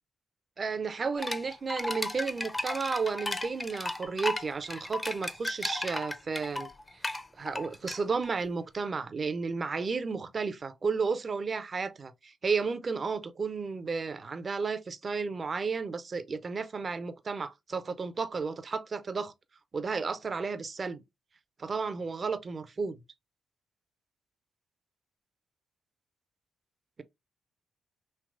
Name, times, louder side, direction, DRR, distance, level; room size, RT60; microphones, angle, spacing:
voice 1, 0.6-6.7 7.4-19.3 19.7-21.0 21.6-23.0, right 4 dB, 45° right, 0.4 m, -33 dB
sound 1, 1.2-8.3, left 2 dB, 25° left, 0.4 m, -35 dB
3.2 x 2.9 x 2.4 m
hypercardioid pair, 40°, 0 cm